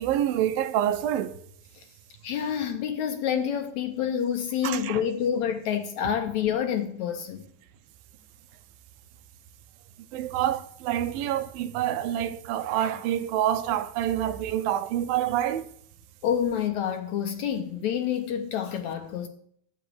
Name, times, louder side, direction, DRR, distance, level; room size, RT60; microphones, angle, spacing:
voice 1, 0.0-1.4 4.6-5.0 10.1-15.7, right 11 dB, 90° right, 2.6 m, -27 dB
voice 2, 2.2-7.4 16.2-19.3, left 8 dB, 70° left, 1.9 m, -28 dB
10.0 x 8.1 x 8.2 m
omnidirectional pair, 4.0 m